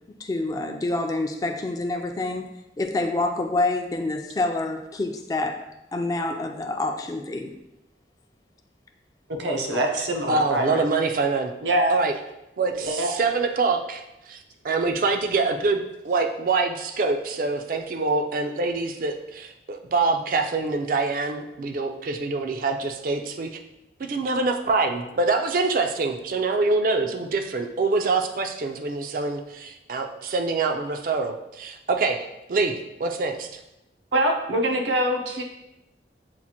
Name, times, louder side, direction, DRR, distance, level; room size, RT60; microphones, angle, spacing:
voice 1, 0.2-2.5 2.8-5.6 5.9-7.5, left 2 dB, 20° left, 4 dB, 0.3 m, -27 dB
voice 2, 9.4-10.9 11.6-11.9 12.8-13.2 34.1-35.4, right 1 dB, 90° right, 3 dB, 0.7 m, -24 dB
voice 3, 10.3-11.5 11.9-12.1 12.6-14.0 14.3-23.6 24.0-32.7 33.0-33.5, right 3 dB, 50° right, 5 dB, 0.4 m, -25 dB
7.0 x 2.4 x 2.8 m, 0.92 s
head